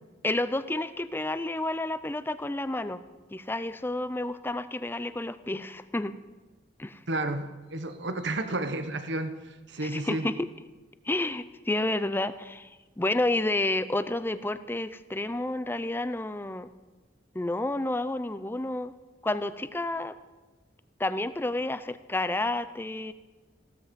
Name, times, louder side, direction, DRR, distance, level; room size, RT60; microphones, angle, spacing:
voice 1, 0.2-3.0 3.3-6.1 6.8-7.0 9.8-10.5 11.1-12.7 13.0-16.7 17.3-18.9 19.2-20.1 21.0-23.1, left 2 dB, 10° left, 13 dB, 0.5 m, -30 dB
voice 2, 7.1-9.4 9.7-10.3, right 2 dB, 65° right, 9 dB, 1.2 m, -31 dB
15.5 x 13.0 x 5.3 m, 1.2 s
head